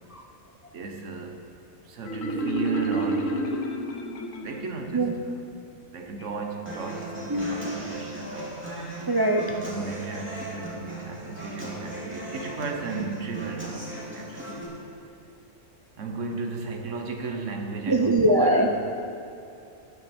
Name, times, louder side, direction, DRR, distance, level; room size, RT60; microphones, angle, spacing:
voice 1, 0.7-1.4 1.8-3.4 4.4-5.3 5.9-8.6 9.6-13.8 14.1-14.7 16.0-18.8, right 4 dB, 65° right, 4 dB, 1.4 m, -34 dB
Marimba xylophone, 2.0-4.8, equal, 75° left, 1.5 m, -29 dB
Human voice / Acoustic guitar, 6.7-14.6, right 1 dB, 10° right, 2.2 m, -38 dB
voice 2, 7.3-7.7 9.1-9.5 17.9-18.7, right 1 dB, 30° right, 1 dB, 0.4 m, -22 dB
13.5 x 9.9 x 4.4 m, 2.7 s
omnidirectional pair, 1.4 m